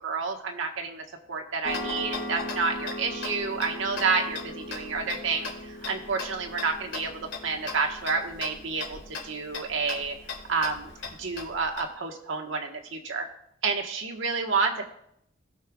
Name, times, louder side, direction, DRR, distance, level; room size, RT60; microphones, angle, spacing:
voice 1, 0.0-10.2 10.5-10.9 11.2-13.3 13.6-14.8, right 4 dB, 80° right, 2 dB, 1.4 m, -29 dB
Tick-tock, 1.6-11.9, left 2 dB, 70° left, 2.2 m, -37 dB
19.0 x 6.5 x 2.4 m, 0.73 s
head